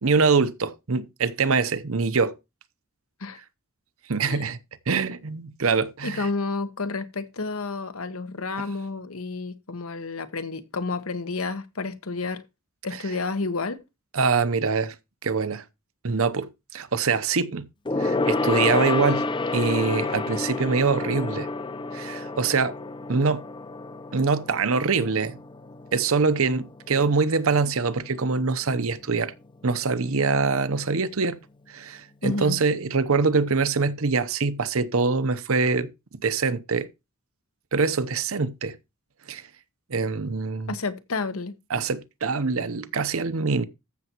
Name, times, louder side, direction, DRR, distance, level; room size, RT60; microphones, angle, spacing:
voice 1, 0.0-2.3 4.1-4.6 4.9-6.3 14.1-14.9 15.2-15.6 16.0-17.7 18.0-19.3 19.5-21.5 21.9-22.7 23.1-23.4 24.1-25.4 25.9-29.3 29.6-31.4 31.7-35.9 36.2-36.9 37.7-38.7 39.3-39.4 39.9-40.8 41.7-43.6, right 4 dB, 75° right, 0.8 m, -24 dB
voice 2, 6.0-12.4 12.8-13.8 32.2-32.6 40.7-41.5, left 3 dB, 80° left, 1.1 m, -30 dB
Gong, 17.8-27.6 27.9-28.2 28.5-28.6, left 2 dB, 20° left, 0.5 m, -29 dB
14.0 x 6.9 x 3.0 m
head